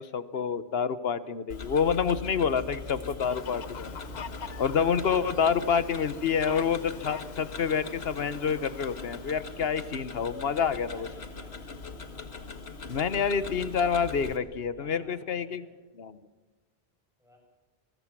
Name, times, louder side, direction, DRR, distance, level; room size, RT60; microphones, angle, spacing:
voice 1, 0.0-4.0 4.6-11.1 12.9-15.6 16.0-16.2, left 6 dB, 75° left, 14 dB, 1.3 m, -28 dB
Tick-tock, 1.5-14.4, left 3 dB, 90° left, 1.8 m, -41 dB
Fowl, 3.2-9.7, left 6 dB, 50° left, 0.9 m, -45 dB
voice 2, 10.4-11.8 14.8-15.8 17.2-17.4, equal, 5° right, -1 dB, 7.2 m, -55 dB
25.0 x 21.5 x 6.1 m, 1.2 s
omnidirectional pair, 1.0 m